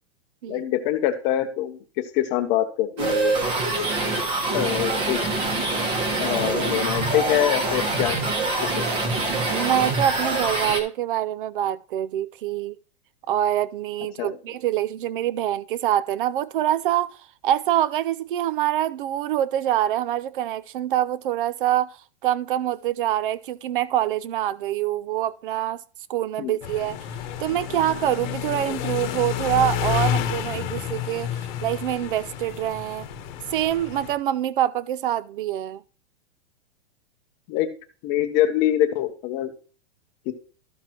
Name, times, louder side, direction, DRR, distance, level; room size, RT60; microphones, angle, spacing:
voice 1, 0.5-1.8 2.1-3.4 3.8-3.9 4.5-5.2 6.2-8.2 8.6-8.8 14.2-14.4 26.4-26.5 37.5-37.7 38.0-39.5 40.3-40.4, left 12 dB, 25° left, 0.7 m, -24 dB
sound 1, 3.0-10.8, right 2 dB, 30° right, 1.4 m, -25 dB
voice 2, 9.5-12.8 13.3-25.8 26.1-27.0 27.4-33.1 33.5-35.8, right 12 dB, 50° right, 0.5 m, -25 dB
sound 2, 26.6-34.1, left 10 dB, 45° left, 1.1 m, -30 dB
13.0 x 6.0 x 2.9 m
supercardioid pair, 170°, 34 cm